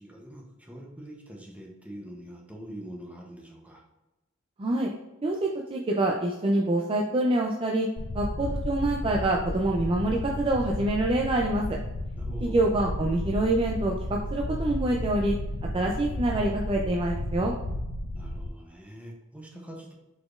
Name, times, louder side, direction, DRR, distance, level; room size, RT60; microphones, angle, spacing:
voice 1, 0.0-3.8 12.1-12.6 15.7-16.0 18.1-19.9, equal, 5° right, -1 dB, 0.7 m, -44 dB
voice 2, 4.6-4.9 5.2-7.9 8.1-11.8 12.4-15.3 15.7-17.5, right 1 dB, 25° right, 0 dB, 0.4 m, -26 dB
sound 1, 8.0-18.5, left 1 dB, 60° left, 0.5 m, -33 dB
4.9 x 4.1 x 2.4 m, 0.99 s
head